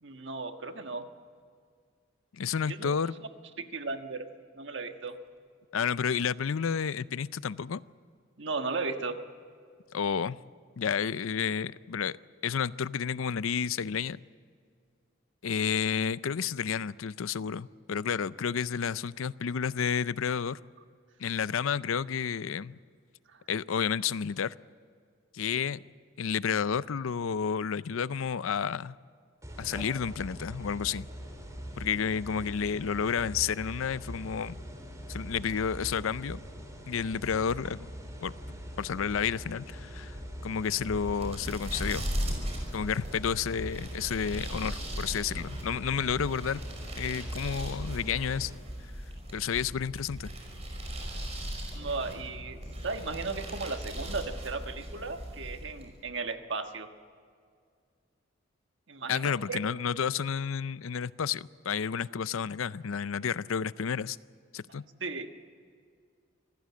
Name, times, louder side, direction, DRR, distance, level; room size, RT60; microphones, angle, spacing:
voice 1, 0.0-1.1 2.7-2.9 3.6-4.3 4.5-5.2 8.4-9.2 23.3-23.4 51.7-56.9 58.9-59.6 65.0-65.3, right 4 dB, 65° right, 6 dB, 1.4 m, -36 dB
voice 2, 2.3-3.1 5.7-7.8 9.9-10.4 10.8-12.2 12.4-14.2 15.4-20.6 21.2-22.8 23.5-24.5 25.3-25.8 26.2-29.0 29.6-31.1 31.8-34.6 35.1-36.4 36.9-37.9 38.2-38.3 38.8-40.2 40.4-42.1 42.7-46.6 47.0-48.5 49.3-50.3 59.1-64.2 64.5-64.8, left 7 dB, 90° left, 18 dB, 0.5 m, -31 dB
sound 1, 29.4-48.6, equal, 15° right, 3.1 m, -43 dB
sound 2, 40.5-56.0, equal, 30° right, 5.5 m, -38 dB
26.0 x 15.5 x 8.5 m, 2.1 s
head